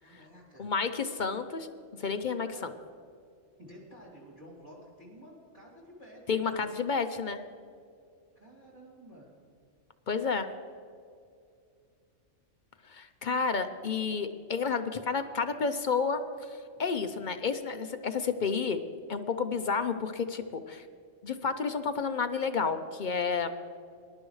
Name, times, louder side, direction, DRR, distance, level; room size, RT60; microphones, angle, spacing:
voice 1, 0.0-0.7 2.5-2.7 3.6-6.6 8.3-9.3, equal, 30° right, -4 dB, 2.8 m, -51 dB
voice 2, 0.6-1.7 2.0-2.5 6.3-7.4 10.1-10.5 12.9-18.8 19.1-20.8 21.2-23.5, left 5 dB, 50° left, 8 dB, 0.7 m, -31 dB
21.0 x 11.5 x 3.2 m, 2.4 s
omnidirectional pair, 1.3 m